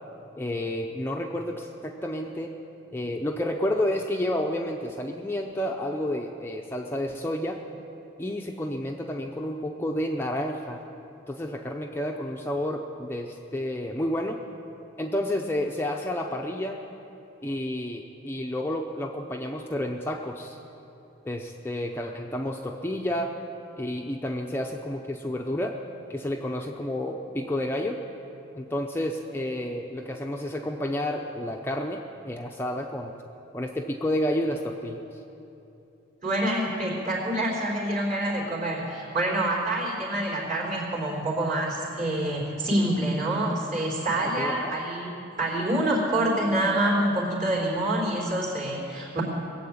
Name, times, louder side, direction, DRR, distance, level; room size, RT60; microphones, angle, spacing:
voice 1, 0.4-2.5 2.9-7.6 8.2-10.8 11.3-14.4 15.0-16.8 17.4-20.6 21.2-23.4 23.8-25.8 26.1-28.0 28.5-33.1 33.5-35.2 44.3-44.8, left 1 dB, 10° left, 1 dB, 0.6 m, -30 dB
voice 2, 36.2-49.2, right 1 dB, 40° right, -2 dB, 3.8 m, -26 dB
21.0 x 7.8 x 8.7 m, 2.8 s
head